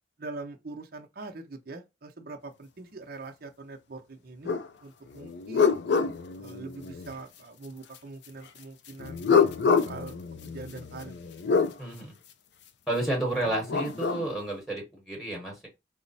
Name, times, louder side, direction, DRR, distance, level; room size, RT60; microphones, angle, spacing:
voice 1, 0.2-4.5 4.8-5.8 6.4-9.3 9.6-11.2, right 3 dB, 50° right, 0.7 m, -43 dB
sound 1, 4.5-4.7 5.1-7.1 9.0-11.7 13.4-14.3, left 5 dB, 60° left, 0.4 m, -26 dB
voice 2, 11.8-12.1 12.9-15.7, right 1 dB, ahead, 1.1 m, -31 dB
4.8 x 2.0 x 3.9 m
head